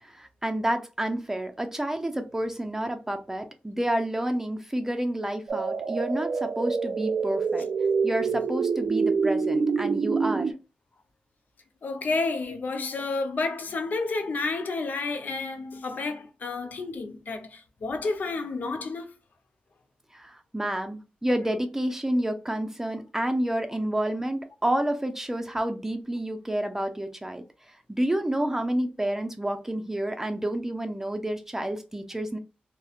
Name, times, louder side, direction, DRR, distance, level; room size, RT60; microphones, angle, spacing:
voice 1, 0.0-7.7 8.0-10.6 20.1-27.4 27.9-32.4, right 1 dB, 15° right, 0.5 m, -29 dB
sound 1, 5.5-10.5, right 5 dB, 65° right, 0.4 m, -26 dB
voice 2, 11.8-19.1, left 3 dB, 65° left, 0.5 m, -30 dB
2.7 x 2.1 x 2.3 m
cardioid pair, 60°, 3 cm